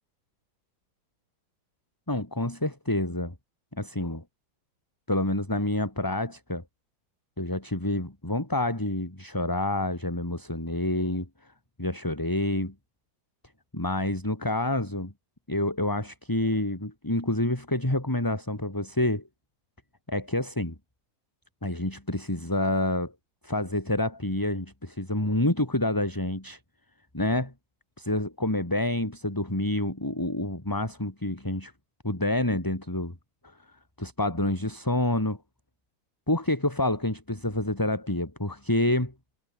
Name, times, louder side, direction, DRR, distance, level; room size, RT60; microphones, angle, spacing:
voice 1, 2.1-3.3 3.8-4.2 5.1-6.6 7.4-11.3 11.8-12.7 13.7-15.1 15.5-19.2 20.1-20.7 21.6-23.1 23.4-26.6 27.1-27.5 28.0-31.7 32.0-33.1 33.4-33.5 34.0-35.4 36.3-39.1, left 1 dB, 10° left, 3.1 m, -28 dB
omnidirectional pair, 2.2 m